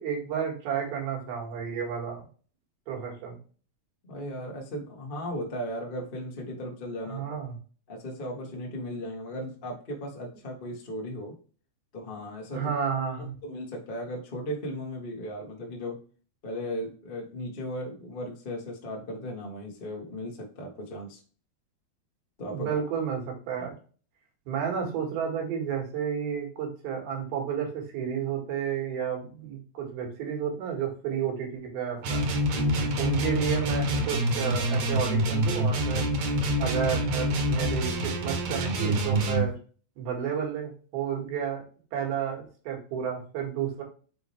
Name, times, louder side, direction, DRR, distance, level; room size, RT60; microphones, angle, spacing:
voice 1, 0.0-2.2 2.9-3.4 7.1-7.6 12.5-13.4 22.5-23.7 24.5-32.2 33.0-36.1 36.6-39.5 40.0-41.6 41.9-43.8, right 7 dB, 85° right, 0 dB, 3.8 m, -31 dB
voice 2, 4.1-7.4 7.9-11.3 11.9-12.7 13.4-16.0 16.4-21.2 22.4-22.8 23.6-23.7 32.5-33.0, equal, 85° left, -1 dB, 0.4 m, -36 dB
sound 1, 32.0-39.5, right 1 dB, 65° right, 1.9 m, -26 dB
7.0 x 4.3 x 3.4 m, 0.39 s
omnidirectional pair, 4.3 m